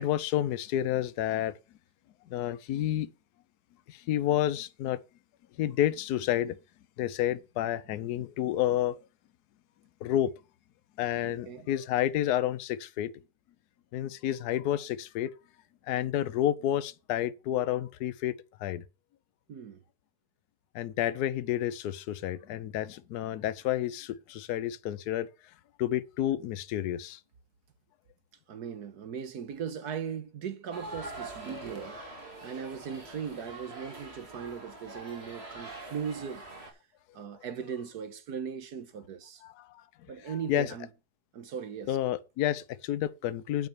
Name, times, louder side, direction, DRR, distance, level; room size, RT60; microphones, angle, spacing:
voice 1, 0.0-1.6 2.3-3.1 3.9-5.0 5.6-6.6 7.0-9.0 10.0-10.3 11.0-13.1 13.9-15.3 15.9-18.3 18.6-18.8 20.7-25.3 25.8-27.2 39.4-39.8 40.5-40.7 41.9-43.7, left 12 dB, 75° left, 1.2 m, -30 dB
voice 2, 11.2-11.7 19.5-19.8 28.5-32.0 32.4-36.4 37.1-39.4 40.1-40.9 41.3-42.0, right 7 dB, 75° right, 1.7 m, -38 dB
sound 1, 30.7-36.7, right 2 dB, 40° right, 2.9 m, -44 dB
9.5 x 5.1 x 7.1 m
omnidirectional pair, 1.7 m